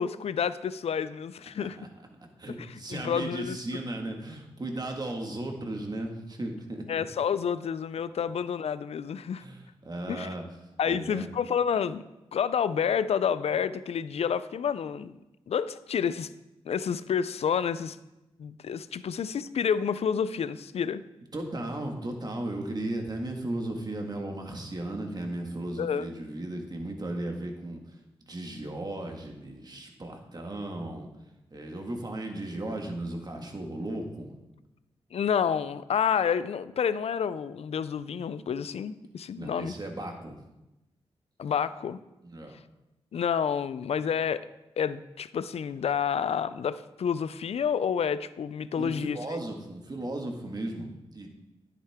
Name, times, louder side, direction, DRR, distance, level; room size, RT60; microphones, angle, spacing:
voice 1, 0.0-1.8 2.5-3.6 6.9-9.4 10.1-10.3 10.8-12.0 12.3-15.2 15.5-16.3 16.7-18.0 18.4-21.0 25.8-26.1 35.1-39.7 41.4-42.0 43.1-44.5 44.8-49.2, left 7 dB, 70° left, 15 dB, 0.4 m, -29 dB
voice 2, 2.4-6.9 9.4-10.4 10.9-11.3 21.3-27.8 28.3-31.1 31.5-34.3 39.4-40.4 42.2-42.6 48.8-51.3, right 1 dB, 40° right, 2 dB, 1.8 m, -36 dB
10.0 x 8.5 x 3.6 m, 0.96 s
cardioid pair, 55°, 11 cm